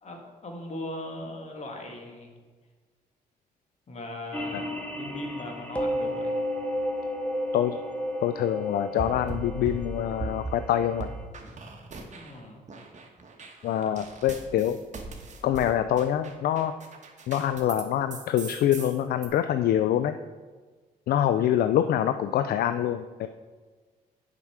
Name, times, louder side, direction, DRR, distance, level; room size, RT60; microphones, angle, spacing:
voice 1, 0.0-2.3 3.9-6.4 12.1-12.7, left 1 dB, 40° left, 2 dB, 1.9 m, -39 dB
sound 1, 4.3-11.2, equal, 10° left, 1.1 m, -33 dB
voice 2, 8.2-11.1 13.6-14.8 15.4-16.7 17.3-20.2 21.1-23.3, left 11 dB, 65° left, 10 dB, 0.4 m, -25 dB
sound 2, 9.0-10.6 11.0-12.4 12.7-17.8 18.1-19.3, right 4 dB, 45° right, 1.3 m, -39 dB
7.3 x 5.8 x 4.8 m, 1.4 s
supercardioid pair, 60°, 17 cm